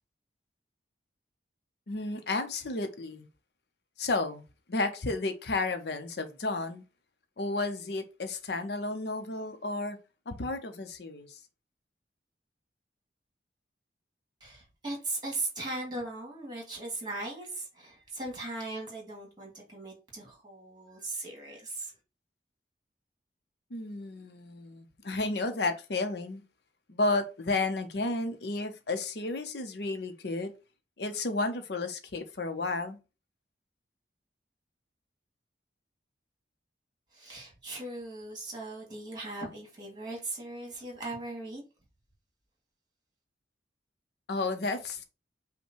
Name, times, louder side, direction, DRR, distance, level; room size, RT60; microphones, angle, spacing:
voice 1, 1.9-3.3 4.0-6.8 7.4-10.0 10.3-11.4 23.7-26.4 26.9-30.5 31.0-33.0 44.3-45.0, left 2 dB, 65° left, 0.6 m, -32 dB
voice 2, 14.4-21.9 37.1-41.6, right 2 dB, 25° right, 1.9 m, -38 dB
5.5 x 2.2 x 4.4 m
head